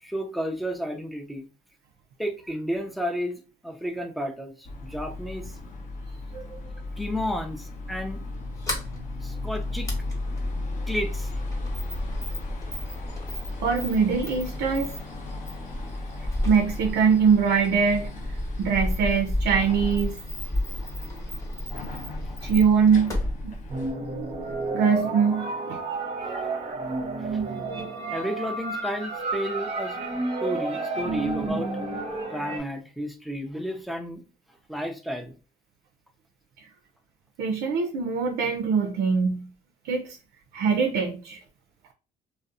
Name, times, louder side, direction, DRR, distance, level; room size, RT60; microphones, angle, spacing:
voice 1, 0.0-1.5 2.2-5.6 7.0-8.2 9.2-9.9 10.9-11.3 22.2-22.3 27.2-27.4 28.1-30.0 30.4-31.7 32.3-34.2 34.7-35.3, equal, ahead, 0.4 m, -32 dB
sound 1, 4.6-23.9, left 2 dB, 45° left, 0.7 m, -36 dB
Sliding door, 8.3-24.7, left 1 dB, 20° left, 0.9 m, -34 dB
voice 2, 13.6-14.9 16.4-18.1 18.6-20.2 22.4-23.2 23.4-23.5 24.7-25.8 36.6-36.7 37.4-39.5 39.8-40.2 40.5-41.4, right 6 dB, 75° right, 0.4 m, -23 dB
sound 2, 23.7-32.6, right 3 dB, 35° right, 0.7 m, -31 dB
2.5 x 2.0 x 2.4 m
cardioid pair, 110°, 17 cm